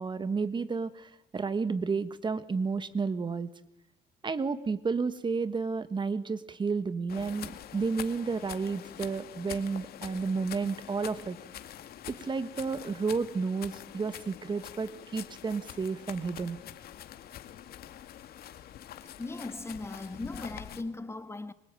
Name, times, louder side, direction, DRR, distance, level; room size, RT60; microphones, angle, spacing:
voice 1, 0.0-3.5 4.2-11.4 12.1-16.6, right 4 dB, 25° right, 1.5 m, -31 dB
sound 1, 7.1-20.8, left 11 dB, 65° left, 2.2 m, -45 dB
voice 2, 19.0-21.5, left 3 dB, 15° left, 1.4 m, -38 dB
25.0 x 23.5 x 9.1 m
cardioid pair, 110°, 17 cm